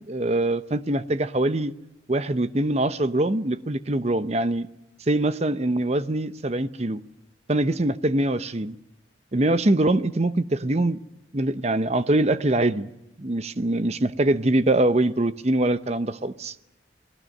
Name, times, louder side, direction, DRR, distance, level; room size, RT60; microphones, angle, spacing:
voice 1, 0.0-1.7 2.1-4.7 5.1-7.0 7.5-8.7 9.3-11.0 11.3-12.9 13.2-16.5, right 1 dB, 35° right, 0.8 m, -23 dB
29.5 x 20.0 x 6.6 m
head